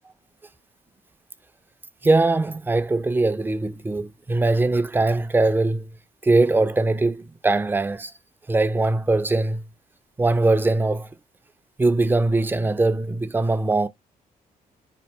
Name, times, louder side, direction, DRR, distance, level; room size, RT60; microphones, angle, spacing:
voice 1, 2.0-5.9 6.2-8.1 8.5-9.6 10.2-11.1 11.8-13.9, right 2 dB, 15° right, 0.4 m, -21 dB
4.3 x 2.7 x 3.0 m
cardioid pair, 105°, 15 cm